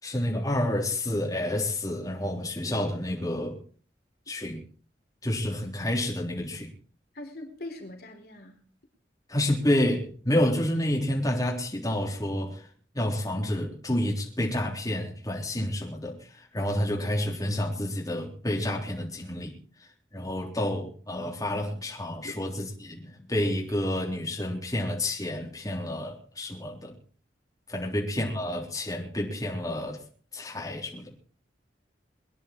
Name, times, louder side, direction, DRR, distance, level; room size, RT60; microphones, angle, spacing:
voice 1, 0.0-3.6 4.3-4.6 5.2-6.7 9.3-12.7 12.9-19.5 20.1-26.9 27.7-30.0 30.3-31.1, left 1 dB, 20° left, -1 dB, 3.7 m, -29 dB
voice 2, 7.1-8.6 22.2-22.3 27.8-27.9, left 1 dB, 55° left, 3 dB, 4.2 m, -41 dB
23.5 x 10.5 x 4.6 m, 0.42 s
head